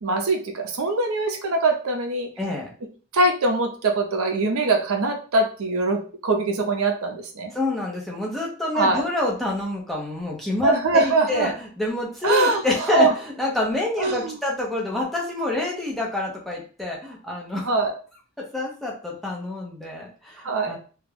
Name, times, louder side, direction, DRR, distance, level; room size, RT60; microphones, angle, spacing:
voice 1, 0.0-2.3 3.1-7.5 8.7-9.0 10.6-11.5 12.2-12.6 12.9-13.1 14.0-14.4 17.6-18.0 20.4-20.8, right 2 dB, 80° right, 3 dB, 0.5 m, -22 dB
voice 2, 2.4-2.7 7.5-17.7 18.4-20.8, left 2 dB, ahead, -3 dB, 0.5 m, -27 dB
2.3 x 2.0 x 3.1 m, 0.38 s
head